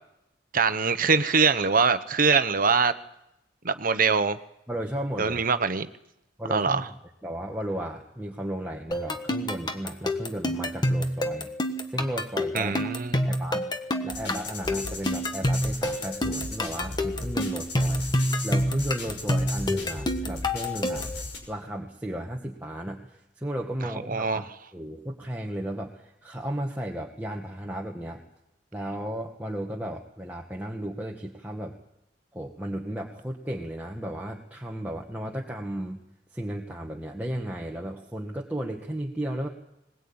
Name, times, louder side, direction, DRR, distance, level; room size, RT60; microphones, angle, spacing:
voice 1, 0.5-2.9 3.6-4.4 5.2-5.9 6.5-6.9 12.5-13.2 24.1-24.4, right 5 dB, 50° right, 11 dB, 1.1 m, -23 dB
voice 2, 4.7-5.4 6.4-6.9 7.2-11.5 11.9-12.9 13.2-13.7 14.0-18.0 18.4-21.1 21.5-28.2 28.7-31.7 32.3-36.0 36.3-39.5, right 1 dB, 10° right, -1 dB, 1.7 m, -34 dB
sound 1, 8.9-21.2, left 1 dB, 25° left, 1.5 m, -28 dB
sound 2, 14.1-21.4, left 2 dB, 75° left, 5.9 m, -37 dB
21.5 x 20.5 x 8.9 m, 0.85 s
head